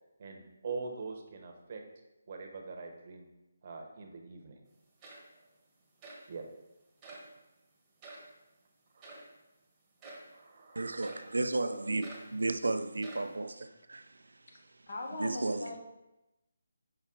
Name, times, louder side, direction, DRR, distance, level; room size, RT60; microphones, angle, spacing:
voice 1, 0.2-1.8 2.3-3.3 3.6-4.6 6.3-6.4 8.9-9.1 10.3-10.8, right 4 dB, 40° right, 0.9 m, -43 dB
sound 1, 4.7-4.8 5.0-5.5 6.0-6.3 7.0-7.3 8.0-8.3 9.0-9.3 10.0-10.3 11.0-11.3 12.0-12.4 13.0-13.4, right 2 dB, 15° right, 1.2 m, -49 dB
voice 2, 10.8-14.1 15.2-15.8, right 2 dB, 90° right, 0.4 m, -33 dB
voice 3, 14.9-15.8, left 2 dB, 50° left, 1.2 m, -40 dB
5.6 x 5.5 x 3.8 m
hypercardioid pair, 165°, 0 cm